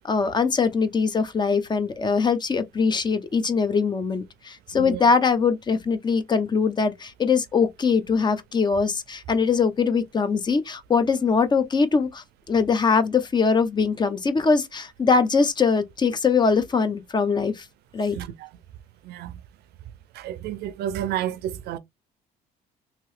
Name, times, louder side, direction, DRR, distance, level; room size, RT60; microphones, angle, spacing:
voice 1, 0.0-17.7 17.9-18.2, left 5 dB, 25° left, 0.5 m, -22 dB
voice 2, 18.1-18.5 19.0-19.4 20.1-21.8, right 11 dB, 75° right, 0.5 m, -31 dB
2.9 x 2.7 x 3.1 m
cardioid pair, 110°, 17 cm